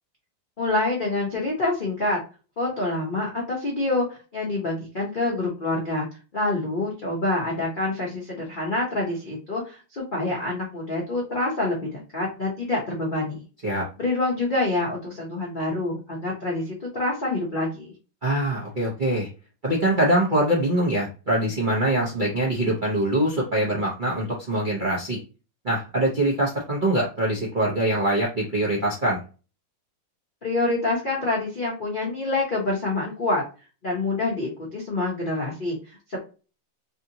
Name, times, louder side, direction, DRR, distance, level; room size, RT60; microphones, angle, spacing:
voice 1, 0.6-2.2 2.6-6.1 6.3-13.5 14.0-17.9 30.4-33.4 33.8-36.2, left 2 dB, 55° left, -3 dB, 0.5 m, -26 dB
voice 2, 18.2-19.3 19.6-25.2 25.6-29.2, right 1 dB, 60° right, -5 dB, 0.5 m, -23 dB
3.5 x 2.7 x 2.7 m, 0.33 s
omnidirectional pair, 2.1 m